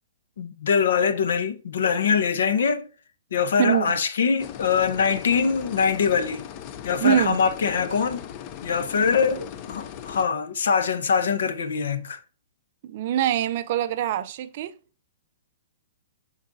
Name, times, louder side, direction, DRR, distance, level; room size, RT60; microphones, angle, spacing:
voice 1, 0.4-2.9 3.3-6.4 6.8-8.3 8.6-12.2, left 6 dB, 70° left, 0.8 m, -23 dB
sound 1, 4.4-10.3, left 9 dB, 25° left, 0.4 m, -39 dB
voice 2, 7.0-7.4 12.8-14.7, right 10 dB, 35° right, 0.4 m, -23 dB
12.0 x 4.0 x 2.6 m
hypercardioid pair, 175°, 0 cm